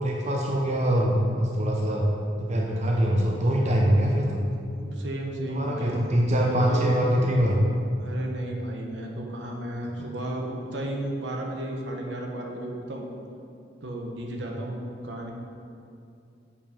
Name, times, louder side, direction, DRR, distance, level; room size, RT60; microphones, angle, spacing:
voice 1, 0.0-2.1 2.4-4.4 5.5-7.6 10.0-10.1 14.3-14.5, equal, 40° right, -1 dB, 0.7 m, -24 dB
voice 2, 4.7-7.0 8.0-13.0 13.8-15.3, right 1 dB, 75° right, 1 dB, 1.0 m, -33 dB
7.4 x 5.5 x 5.0 m, 2.5 s
head